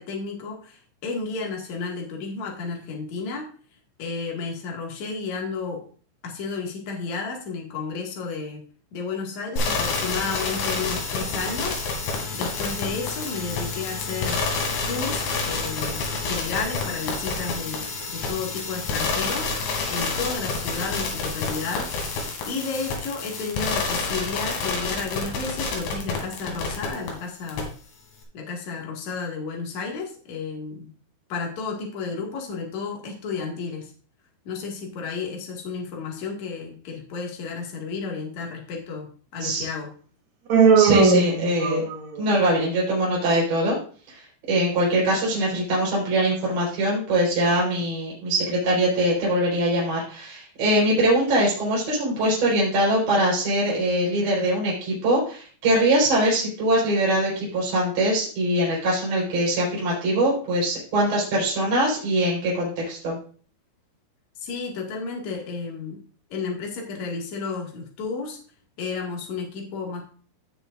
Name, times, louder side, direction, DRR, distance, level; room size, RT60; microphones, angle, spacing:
voice 1, 0.0-3.5 4.0-5.8 6.2-8.6 8.9-14.4 14.9-19.5 19.9-21.9 22.4-27.7 28.3-30.9 31.3-33.9 34.4-39.9 64.4-66.0 66.3-68.4 68.8-70.0, left 4 dB, 50° left, 0 dB, 2.6 m, -32 dB
sound 1, 9.6-27.1 27.5-27.6, left 4 dB, 75° left, 4.5 m, -28 dB
Human voice, 40.5-42.2, right 5 dB, 60° right, 2.0 m, -18 dB
voice 2, 40.8-41.8 42.2-43.8 44.5-63.2, right 1 dB, 35° right, -5 dB, 5.3 m, -22 dB
16.5 x 6.5 x 2.5 m, 0.42 s
omnidirectional pair, 5.6 m